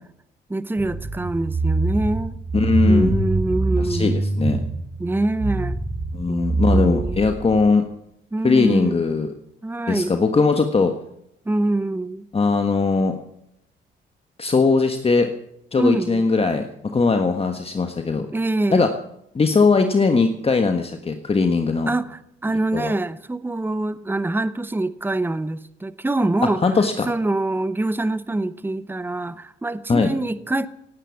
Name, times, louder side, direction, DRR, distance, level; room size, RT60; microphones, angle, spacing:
voice 1, 0.5-2.3 2.9-4.2 5.0-5.8 6.3-7.2 8.3-9.0 9.6-10.1 11.5-12.3 15.8-16.2 18.3-18.9 21.9-26.6 27.1-30.7, right 2 dB, 10° right, 15 dB, 0.9 m, -25 dB
sound 1, 0.8-7.7, right 3 dB, 40° right, 5.1 m, -24 dB
voice 2, 2.5-3.2 3.8-4.6 6.1-7.8 8.4-9.3 9.9-10.9 12.3-13.2 14.4-15.3 15.7-18.3 18.7-18.9 19.3-21.9 22.7-22.9 26.4-27.1 29.9-30.1, left 4 dB, 30° left, 6 dB, 1.5 m, -20 dB
18.0 x 10.0 x 7.2 m, 0.76 s
cardioid pair, 90°, 20 cm